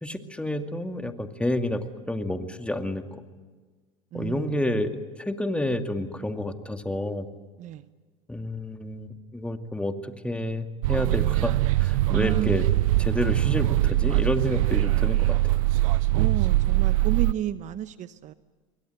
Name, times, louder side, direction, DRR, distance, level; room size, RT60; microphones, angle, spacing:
voice 1, 0.0-3.2 4.1-7.3 8.3-11.5 11.8-12.7 13.0-15.6, left 1 dB, 5° left, 6 dB, 2.3 m, -29 dB
voice 2, 4.1-4.6 7.6-7.9 12.1-12.6 16.1-18.3, right 11 dB, 45° right, 13 dB, 0.9 m, -32 dB
sound 1, 10.8-17.3, right 17 dB, 80° right, 0.7 m, -22 dB
28.0 x 23.0 x 8.1 m, 1.4 s
hypercardioid pair, 85°, 17 cm